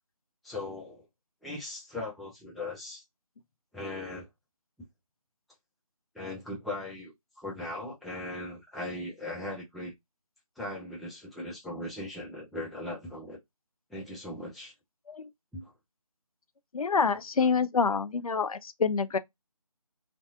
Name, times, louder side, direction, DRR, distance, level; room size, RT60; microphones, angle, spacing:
voice 1, 0.4-1.1 1.4-3.0 3.7-4.3 6.1-9.9 10.6-13.4 13.9-14.7 15.5-15.7 17.4-17.5, left 2 dB, ahead, 0.3 m, -39 dB
voice 2, 16.7-19.2, left 5 dB, 75° left, 0.4 m, -27 dB
2.6 x 2.2 x 2.3 m
figure-of-eight pair, 175°, 18 cm